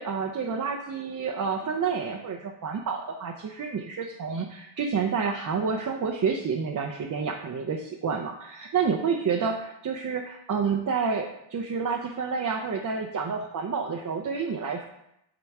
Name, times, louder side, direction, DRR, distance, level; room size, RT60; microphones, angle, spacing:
voice 1, 0.0-14.9, right 5 dB, 40° right, 1 dB, 0.6 m, -29 dB
8.7 x 2.9 x 4.7 m, 0.82 s
cardioid pair, 85°, 50 cm